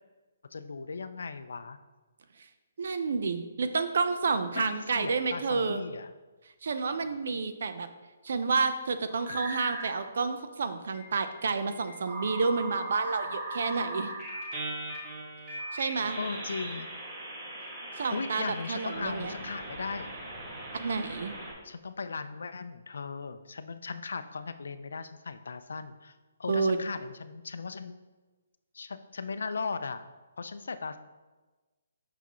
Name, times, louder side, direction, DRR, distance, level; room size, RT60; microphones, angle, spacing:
voice 1, 0.5-1.8 4.5-6.1 16.2-16.9 17.9-20.1 21.6-28.0 28.7-30.0 30.4-31.0, left 4 dB, 75° left, 11 dB, 0.4 m, -37 dB
voice 2, 2.8-5.8 6.6-7.9 8.2-14.1 15.7-16.2 18.0-19.3 20.7-21.3 26.5-26.8, right 4 dB, 65° right, 10 dB, 0.5 m, -30 dB
sound 1, 9.1-10.0 10.9-21.5, right 1 dB, 35° right, 1.6 m, -39 dB
5.9 x 5.8 x 3.0 m, 1.2 s
hypercardioid pair, 150°, 0 cm